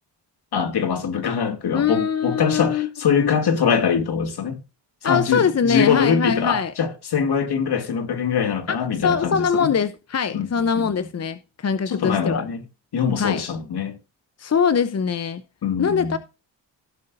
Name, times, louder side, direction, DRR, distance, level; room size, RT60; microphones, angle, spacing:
voice 1, 0.5-4.6 5.0-9.7 10.3-10.5 10.8-10.9 11.9-12.6 12.9-13.9 15.6-16.2, left 6 dB, 60° left, 2.3 m, -23 dB
voice 2, 1.7-3.3 5.0-6.7 8.7-12.4 13.2-13.4 14.4-15.4 15.8-16.2, left 6 dB, 35° left, 0.8 m, -22 dB
16.5 x 7.5 x 2.6 m
supercardioid pair, 60°, 44 cm